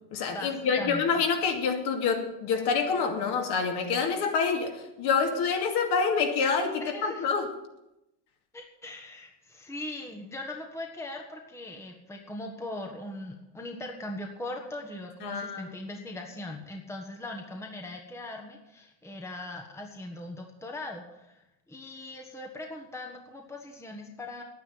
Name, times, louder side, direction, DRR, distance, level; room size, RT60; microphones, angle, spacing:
voice 1, 0.1-7.5 15.2-15.7, left 5 dB, 50° left, 3 dB, 2.7 m, -27 dB
voice 2, 6.8-7.3 8.5-24.4, left 1 dB, 5° left, 2 dB, 1.4 m, -40 dB
9.8 x 9.4 x 9.5 m, 0.91 s
supercardioid pair, 125°, 49 cm